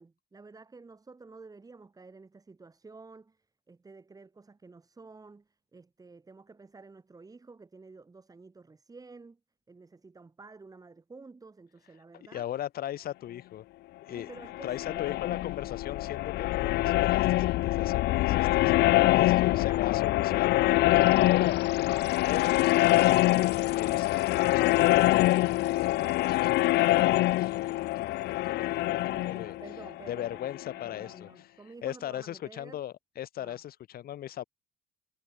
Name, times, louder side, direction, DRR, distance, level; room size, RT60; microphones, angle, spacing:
voice 1, 0.0-9.4 9.7-12.5 14.1-15.5 18.9-20.3 20.6-21.7 28.7-32.8 33.4-33.6, right 3 dB, 20° right, 7.5 m, -51 dB
voice 2, 12.3-13.6 14.0-14.3 14.6-18.9 19.1-20.6 21.1-21.6 22.2-29.6 30.1-31.3 31.8-34.4, left 12 dB, 60° left, 5.0 m, -38 dB
sound 1, 14.4-31.0, left 17 dB, 80° left, 1.2 m, -25 dB
cardioid pair, 110°, 17 cm